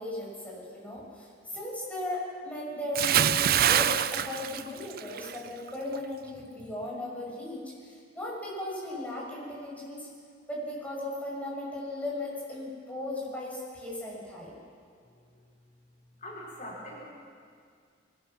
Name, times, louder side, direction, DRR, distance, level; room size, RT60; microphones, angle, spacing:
voice 1, 0.0-10.1 10.5-14.6, left 1 dB, 10° left, -5 dB, 7.0 m, -37 dB
Bathtub (filling or washing) / Splash splatter, 2.9-5.4 5.7-6.0, right 10 dB, 50° right, 0.5 m, -25 dB
voice 2, 15.1-15.4 16.2-17.0, left 1 dB, 45° left, -4 dB, 5.1 m, -43 dB
24.5 x 21.0 x 6.1 m, 2.1 s
head